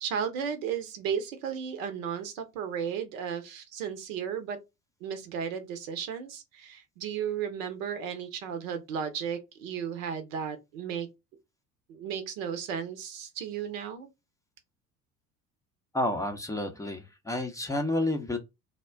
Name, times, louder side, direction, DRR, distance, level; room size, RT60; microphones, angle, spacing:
voice 1, 0.0-4.6 5.0-11.1 11.9-14.1, right 7 dB, 65° right, 0.8 m, -34 dB
voice 2, 15.9-18.4, left 1 dB, 10° left, 0.6 m, -30 dB
2.3 x 2.1 x 3.3 m
figure-of-eight pair, 60°, 43 cm